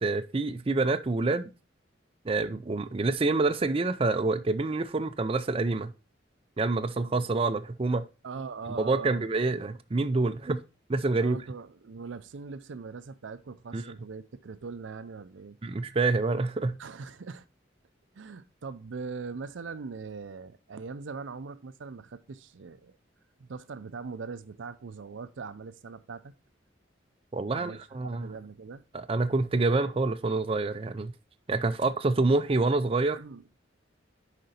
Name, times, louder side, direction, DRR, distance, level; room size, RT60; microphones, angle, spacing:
voice 1, 0.0-1.5 2.2-5.9 6.6-8.1 8.8-10.6 10.9-11.4 13.7-13.8 15.6-16.8 27.3-28.3 28.9-31.1 31.5-33.2, right 3 dB, 30° right, 0.5 m, -27 dB
voice 2, 8.2-9.3 11.2-15.6 16.8-17.5 18.2-23.0 23.4-26.3 27.5-28.8 33.1-33.5, right 5 dB, 85° right, 0.5 m, -41 dB
6.5 x 5.1 x 4.2 m
head